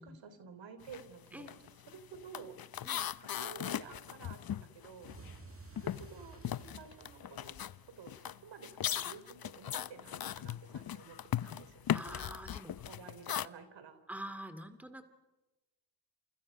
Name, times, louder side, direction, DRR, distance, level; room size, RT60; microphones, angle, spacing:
voice 1, 0.0-1.6 1.9-2.5 3.3-5.2 5.7-11.2 11.4-12.0 12.9-14.0, right 6 dB, 65° right, 10 dB, 3.7 m, -52 dB
sound 1, 0.8-1.1 1.4-5.4 5.8-13.5, left 10 dB, 45° left, 0.9 m, -39 dB
sound 2, 5.0-8.2, right 4 dB, 25° right, 1.9 m, -53 dB
voice 2, 11.9-12.9 14.1-15.0, right 1 dB, 5° right, 9 dB, 2.4 m, -46 dB
29.5 x 28.5 x 5.4 m, 1.1 s
supercardioid pair, 60°, 48 cm